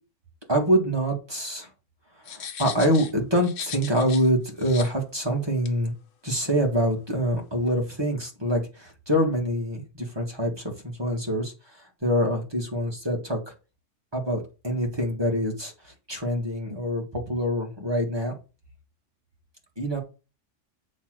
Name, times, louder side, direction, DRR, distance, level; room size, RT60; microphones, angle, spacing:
voice 1, 0.5-1.7 2.3-5.9 6.2-13.4 14.1-18.3 19.8-20.0, equal, 20° right, 0 dB, 1.9 m, -25 dB
sound 1, 2.2-4.3 4.6-4.9 5.6-5.7, left 8 dB, 85° left, 1.2 m, -38 dB
7.1 x 3.6 x 6.2 m, 0.31 s
omnidirectional pair, 1.3 m